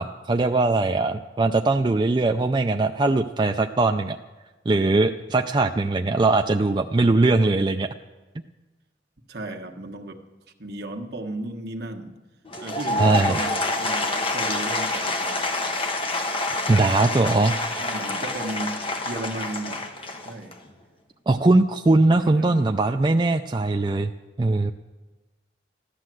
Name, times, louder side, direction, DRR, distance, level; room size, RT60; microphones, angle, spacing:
voice 1, 0.0-4.2 4.7-7.9 13.0-13.4 16.7-17.9 21.3-24.1 24.4-24.7, right 2 dB, 25° right, 5 dB, 0.4 m, -21 dB
voice 2, 9.3-10.2 10.6-12.2 12.6-15.4 16.6-17.0 17.8-19.8 20.2-20.5 22.2-22.8, right 2 dB, 60° right, 3 dB, 1.4 m, -35 dB
Applause / Crowd, 12.5-20.7, left 2 dB, 30° left, 1.2 m, -27 dB
14.5 x 11.5 x 7.6 m, 1.2 s
head